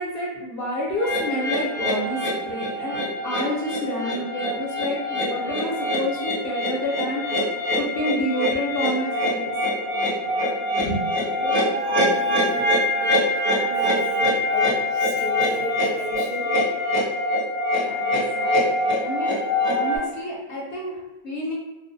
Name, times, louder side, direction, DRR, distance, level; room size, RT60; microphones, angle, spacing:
voice 1, 0.0-7.2 7.8-9.5 10.8-11.1 17.8-21.5, equal, 65° left, -2 dB, 0.7 m, -29 dB
sound 1, 1.0-20.0, left 1 dB, 10° right, 0.6 m, -24 dB
voice 2, 11.4-12.7 13.0-13.3 13.6-16.5, right 2 dB, 55° right, -8 dB, 1.0 m, -34 dB
2.4 x 2.1 x 2.5 m, 1.0 s
omnidirectional pair, 1.1 m